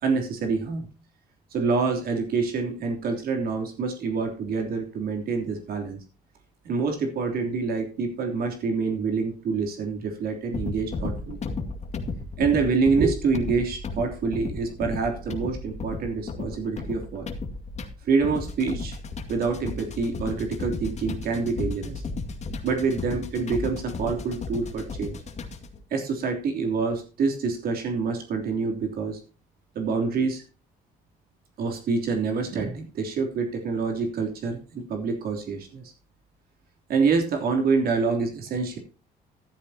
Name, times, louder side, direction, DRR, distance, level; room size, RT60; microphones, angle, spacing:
voice 1, 0.0-0.9 1.5-6.0 6.6-11.4 12.4-17.3 18.0-19.0 19.3-22.0 22.6-25.2 25.9-29.2 29.7-30.4 31.6-35.9 36.9-38.8, right 4 dB, 60° right, 3 dB, 3.3 m, -26 dB
sound 1, 10.5-25.8, left 3 dB, 40° left, 2.2 m, -34 dB
14.0 x 12.0 x 2.9 m, 0.35 s
cardioid pair, 110°, 17 cm